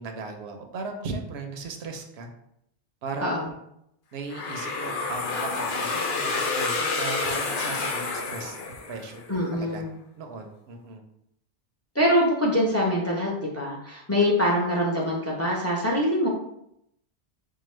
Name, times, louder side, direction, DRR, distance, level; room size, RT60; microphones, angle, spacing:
voice 1, 0.0-2.3 3.0-3.5 4.1-9.2 9.5-9.8 10.2-11.0, right 3 dB, 75° right, 4 dB, 0.8 m, -37 dB
sound 1, 4.3-9.2, left 3 dB, 70° left, 0.9 m, -29 dB
voice 2, 9.3-9.9 11.9-16.3, equal, 15° left, -2 dB, 0.6 m, -24 dB
4.7 x 2.2 x 3.1 m, 0.76 s
omnidirectional pair, 1.1 m